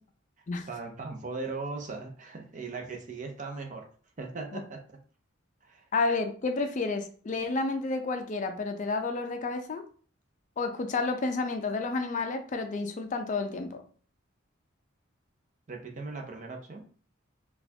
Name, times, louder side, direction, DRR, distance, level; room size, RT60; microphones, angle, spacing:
voice 1, 0.7-3.9 4.2-4.8 5.6-5.8 15.7-16.9, right 3 dB, 40° right, 3 dB, 0.6 m, -38 dB
voice 2, 5.9-9.8 10.6-13.8, left 3 dB, 40° left, 6 dB, 0.4 m, -30 dB
4.1 x 2.3 x 2.7 m, 0.44 s
head